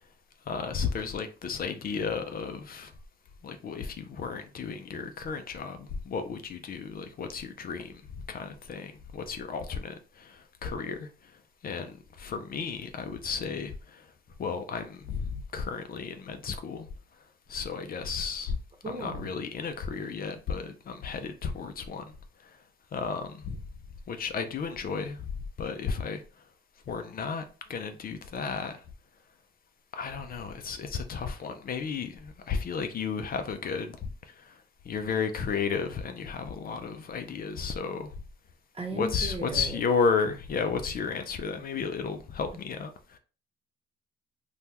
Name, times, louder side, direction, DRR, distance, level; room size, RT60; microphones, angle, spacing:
voice 1, 0.5-2.9 3.4-8.0 8.3-11.1 11.6-14.1 14.4-16.9 17.5-18.6 18.9-22.0 22.9-23.6 24.1-25.3 25.6-26.2 26.9-27.4 27.7-28.8 29.9-34.6 34.9-38.1 38.9-43.2, left 5 dB, 50° left, 0.4 m, -33 dB
voice 2, 18.8-19.3 38.7-39.8, right 2 dB, 30° right, 1.0 m, -36 dB
3.3 x 2.2 x 2.8 m
cardioid pair, 90°, 20 cm